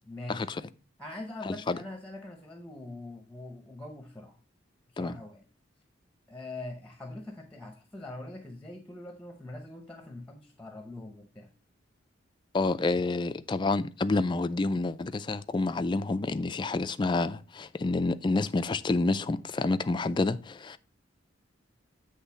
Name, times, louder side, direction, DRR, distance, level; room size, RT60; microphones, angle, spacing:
voice 1, 0.0-0.5 1.0-4.4 4.9-5.4 6.3-11.5, left 2 dB, 5° left, 0.8 m, -43 dB
voice 2, 1.5-1.8 5.0-5.1 12.5-20.8, left 3 dB, 25° left, 0.3 m, -28 dB
8.1 x 3.3 x 5.5 m
head